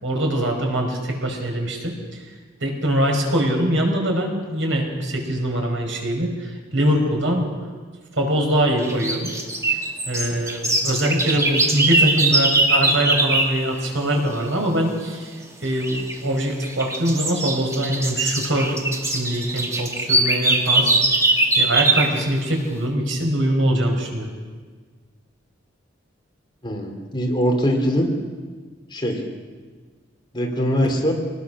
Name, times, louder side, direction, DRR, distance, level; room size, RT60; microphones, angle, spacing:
voice 1, 0.0-1.9 2.6-7.5 8.1-9.3 9.7-9.8 10.1-18.8 19.0-20.9 21.6-24.3, equal, 80° right, 2 dB, 5.0 m, -23 dB
sound 1, 8.8-13.6 15.8-16.2 16.6-22.2, right 2 dB, 15° right, 2.0 m, -21 dB
voice 2, 26.6-28.1 28.9-29.2 30.3-31.1, equal, 25° left, 2 dB, 3.3 m, -22 dB
25.0 x 19.5 x 6.3 m, 1.5 s
head